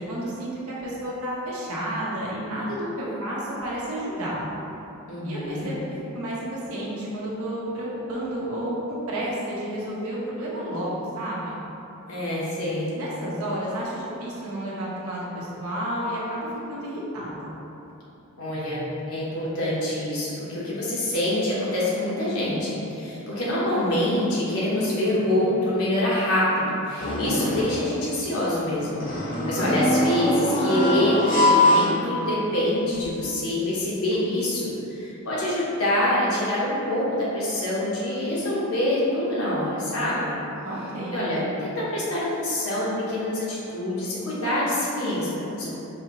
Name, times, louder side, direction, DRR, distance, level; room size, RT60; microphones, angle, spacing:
voice 1, 0.1-4.4 5.2-5.8 6.1-11.6 12.9-17.5 29.3-29.9 40.6-41.2, right 1 dB, 90° right, -6 dB, 1.0 m, -31 dB
voice 2, 5.1-5.7 12.1-12.9 18.4-29.0 29.2-40.4 41.1-45.7, left 1 dB, 90° left, -7 dB, 1.1 m, -26 dB
sound 1, 27.0-27.8 28.9-32.5 32.9-33.0 34.1-34.2, left 1 dB, 40° left, 0.6 m, -23 dB
4.7 x 2.7 x 3.0 m, 2.9 s
head